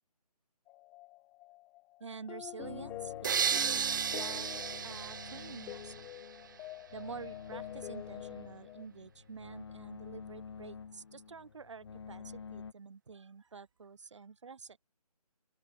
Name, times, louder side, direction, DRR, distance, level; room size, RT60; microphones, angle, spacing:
sound 1, 0.7-8.9, left 19 dB, 5° left, 0.7 m, -47 dB
voice 1, 2.0-4.5 4.8-6.1 6.9-14.8, right 5 dB, 45° right, 7.0 m, -48 dB
sound 2, 2.6-12.7, left 6 dB, 40° left, 1.5 m, -49 dB
sound 3, 3.2-6.3, right 7 dB, 30° right, 1.2 m, -34 dB
open air
figure-of-eight pair, 150°, 20 cm